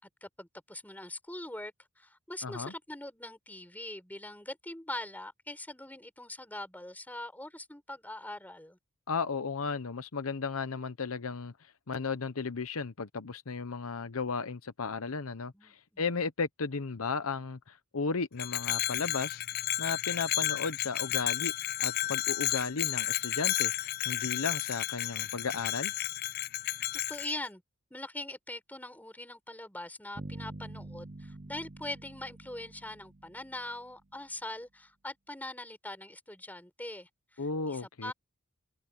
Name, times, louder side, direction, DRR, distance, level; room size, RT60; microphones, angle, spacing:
voice 1, 0.0-8.8 15.5-16.1 27.1-27.6 27.9-38.1, left 1 dB, 10° left, 5.2 m, -42 dB
voice 2, 2.4-2.7 9.1-11.5 11.9-19.4 19.8-21.5 21.8-25.9 37.4-38.1, left 4 dB, 75° left, 0.9 m, -34 dB
Bell, 18.4-27.3, left 15 dB, 45° left, 0.3 m, -32 dB
sound 1, 30.2-34.1, right 2 dB, 35° right, 0.7 m, -46 dB
head